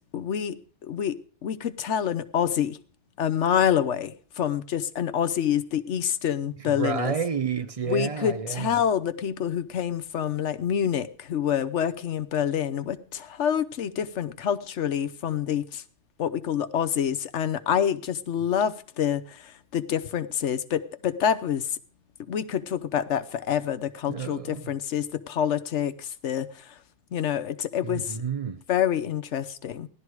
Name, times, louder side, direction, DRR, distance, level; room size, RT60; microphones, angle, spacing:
voice 1, 0.1-0.6 0.8-2.8 3.2-7.1 7.9-15.8 16.2-21.8 22.3-26.7 27.1-28.2 28.7-29.9, left 9 dB, 55° left, 1.1 m, -27 dB
voice 2, 6.6-8.7 24.1-24.6 27.8-28.6, right 6 dB, 70° right, 0.3 m, -30 dB
16.5 x 12.0 x 4.7 m
omnidirectional pair, 1.6 m